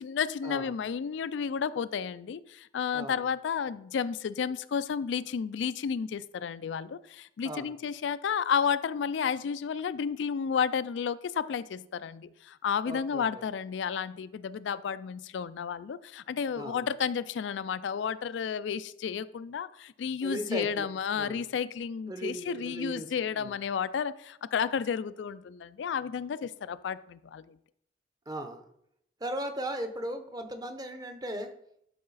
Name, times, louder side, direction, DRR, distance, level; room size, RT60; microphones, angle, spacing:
voice 1, 0.0-27.6, left 7 dB, 75° left, 0.3 m, -32 dB
voice 2, 2.9-3.2 7.4-7.7 12.9-13.4 16.5-16.8 20.2-20.9 21.2-21.4 22.1-23.1 23.3-23.6 28.3-28.6 29.2-31.5, right 1 dB, 20° right, 0.8 m, -37 dB
11.5 x 4.8 x 4.0 m
head